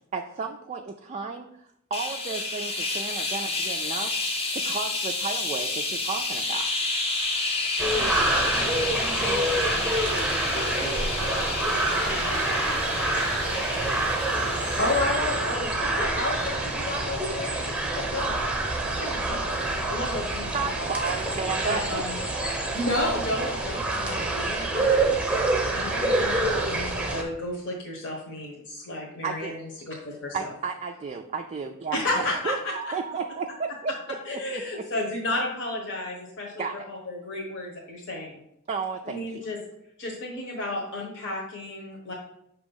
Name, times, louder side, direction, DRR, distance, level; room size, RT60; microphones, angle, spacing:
voice 1, 0.1-4.1 4.5-6.7 10.8-10.9 20.5-22.0 29.2-29.6 30.3-32.0 32.4-34.6 36.6-36.8 38.7-39.6, right 5 dB, 30° right, 3 dB, 0.3 m, -33 dB
sound 1, 1.9-15.3, left 2 dB, 25° left, 0.7 m, -30 dB
voice 2, 7.8-13.6 18.9-19.4, left 2 dB, 85° left, 0 dB, 1.3 m, -40 dB
sound 2, 7.8-27.2, right 2 dB, 5° right, 0.9 m, -27 dB
voice 3, 14.8-18.5 18.9-19.5 19.8-20.9 21.6-22.1 22.7-25.4 25.7-30.5 31.9-32.7 34.2-38.4 39.0-39.6 40.0-42.1, left 2 dB, 55° left, -2 dB, 1.2 m, -32 dB
6.2 x 2.9 x 5.4 m, 0.78 s
head